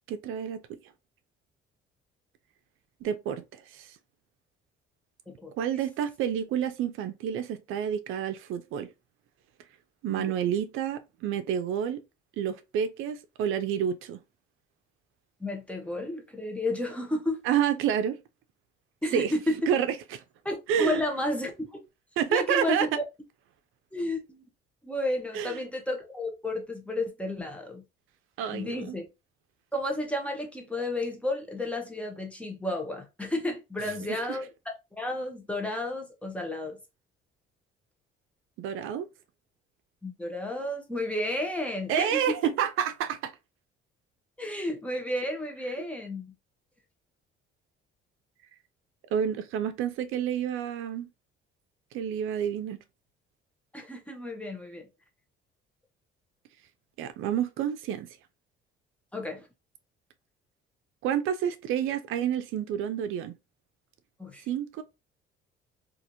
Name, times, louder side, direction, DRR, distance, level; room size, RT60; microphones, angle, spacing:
voice 1, 0.1-0.8 3.0-3.9 5.6-8.9 10.0-12.0 12.4-14.2 17.4-18.2 19.1-19.3 19.7-20.2 20.7-21.0 22.2-23.0 25.3-25.6 28.4-29.0 34.1-34.4 38.6-39.1 41.9-43.3 45.8-45.9 49.1-51.1 51.9-52.8 57.0-58.1 61.0-63.3 64.5-64.8, right 9 dB, 75° right, 0.4 m, -29 dB
voice 2, 15.4-17.4 19.0-19.6 20.4-21.7 22.3-22.9 23.9-24.5 24.8-27.8 28.5-29.0 29.7-34.5 34.9-36.8 40.0-42.2 44.4-46.3 53.7-54.9 59.1-59.5 64.2-64.4, left 1 dB, 5° left, 0.7 m, -32 dB
2.8 x 2.4 x 2.6 m
cardioid pair, 115°, 21 cm